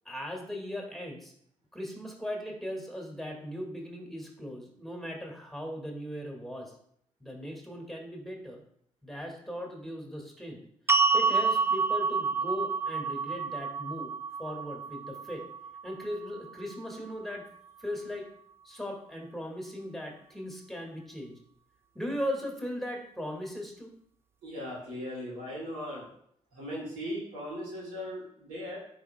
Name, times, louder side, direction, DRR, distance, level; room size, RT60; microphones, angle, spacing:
voice 1, 0.1-1.3 1.7-6.7 7.2-8.6 9.0-10.6 10.9-14.1 14.4-15.4 15.8-17.4 17.8-18.3 18.6-21.3 22.0-24.0, equal, ahead, 1 dB, 1.8 m, -38 dB
sound 1, 10.9-17.1, right 5 dB, 20° right, 0.3 m, -29 dB
voice 2, 24.4-26.0 26.5-28.8, equal, 85° right, -5 dB, 2.4 m, -38 dB
10.5 x 4.1 x 2.2 m, 0.68 s
hypercardioid pair, 45°, 14 cm